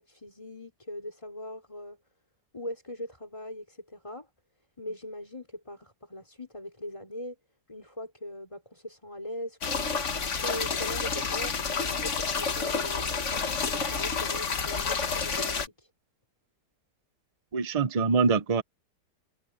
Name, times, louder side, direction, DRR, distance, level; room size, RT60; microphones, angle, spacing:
voice 1, 0.0-2.0 2.5-4.3 4.8-7.4 7.7-9.9 10.4-15.9, left 1 dB, 15° left, 3.8 m, -40 dB
sound 1, 9.6-15.7, left 5 dB, 45° left, 1.6 m, -29 dB
voice 2, 17.5-18.6, right 5 dB, 35° right, 0.6 m, -24 dB
omnidirectional pair, 1.9 m